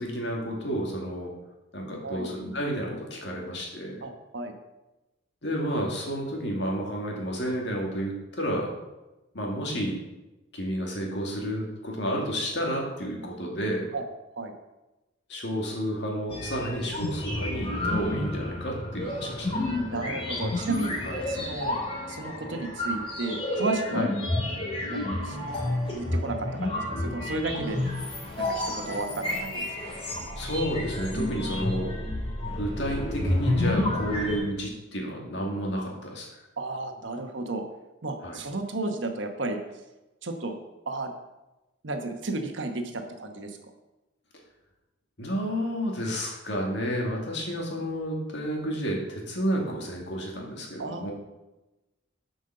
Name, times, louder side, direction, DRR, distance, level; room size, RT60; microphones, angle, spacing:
voice 1, 0.0-1.3 1.7-4.1 5.4-8.7 9.3-10.0 10.5-13.9 15.3-19.7 21.0-21.1 23.9-24.1 30.4-32.0 32.6-36.3 38.2-38.4 45.2-51.1, equal, 60° left, -1 dB, 2.1 m, -31 dB
voice 2, 4.0-4.5 13.9-14.0 14.4-14.5 19.7-20.9 21.3-21.8 22.1-24.1 24.9-25.4 25.9-27.8 28.4-29.7 36.6-37.6 38.0-39.6 40.2-40.6 40.9-41.1 41.8-43.6 50.8-51.1, right 2 dB, 70° right, 5 dB, 1.1 m, -33 dB
sound 1, 16.3-34.4, left 1 dB, 30° left, 2.3 m, -30 dB
7.8 x 5.4 x 6.6 m, 1.0 s
head